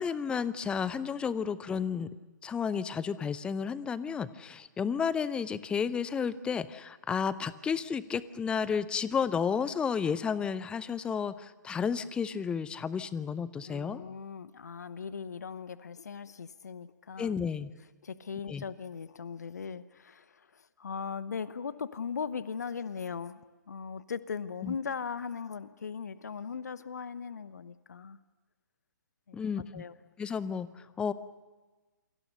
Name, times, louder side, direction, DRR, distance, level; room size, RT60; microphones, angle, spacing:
voice 1, 0.0-2.1 2.4-14.0 17.2-17.7 18.5-18.6 24.6-24.8 29.3-29.8 30.2-31.1, left 6 dB, 10° left, 17 dB, 0.7 m, -32 dB
voice 2, 13.7-17.4 18.0-28.2 29.3-29.4 29.7-30.0, left 6 dB, 60° left, 15 dB, 1.0 m, -39 dB
28.5 x 23.5 x 6.7 m, 1.2 s
figure-of-eight pair, 125°, 10 cm